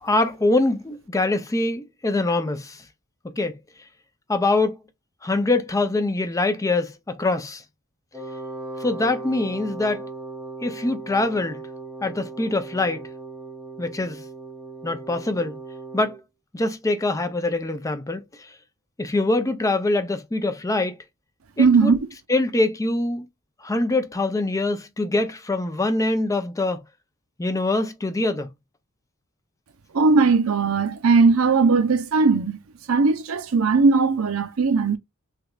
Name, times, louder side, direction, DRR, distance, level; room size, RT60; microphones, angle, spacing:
voice 1, 0.0-2.8 3.4-3.6 4.3-4.8 5.2-7.6 8.8-10.0 10.6-11.6 12.0-13.1 13.8-14.2 14.8-15.6 15.9-16.1 16.5-18.5 19.0-21.0 21.6-21.9 22.3-23.3 23.6-26.8 27.4-28.5, left 2 dB, 15° left, 0.4 m, -24 dB
Wind instrument woodwind instrument, 8.1-16.2, right 3 dB, 5° right, 1.1 m, -37 dB
voice 2, 21.6-22.0 29.9-32.6 32.9-35.0, right 4 dB, 75° right, 0.6 m, -18 dB
3.3 x 2.9 x 2.3 m
head